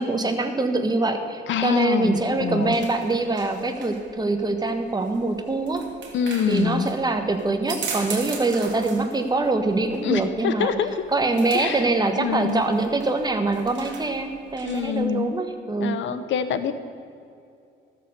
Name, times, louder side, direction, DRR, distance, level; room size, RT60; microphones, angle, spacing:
voice 1, 0.0-5.8 6.5-10.7 11.1-16.0, right 2 dB, 20° right, 6 dB, 1.3 m, -24 dB
voice 2, 1.5-2.7 6.1-6.9 10.0-11.0 11.5-11.9 12.2-12.6 14.6-15.4 15.8-16.7, left 7 dB, 70° left, 10 dB, 0.9 m, -25 dB
sound 1, 2.1-15.0, right 5 dB, 65° right, 2.2 m, -40 dB
13.5 x 7.1 x 6.7 m, 2.5 s
cardioid pair, 90°, 20 cm